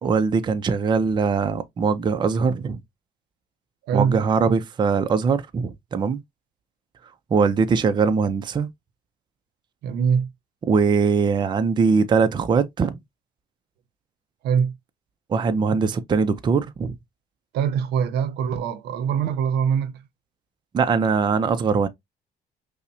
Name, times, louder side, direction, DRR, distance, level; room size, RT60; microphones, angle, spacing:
voice 1, 0.0-2.8 3.9-6.2 7.3-8.7 10.7-13.0 15.3-16.9 20.7-21.9, right 5 dB, 25° right, 0.4 m, -21 dB
voice 2, 3.9-4.2 9.8-10.3 14.4-14.8 17.5-20.0, right 7 dB, 80° right, 0.6 m, -23 dB
5.4 x 2.1 x 2.6 m
cardioid pair, 110°, 17 cm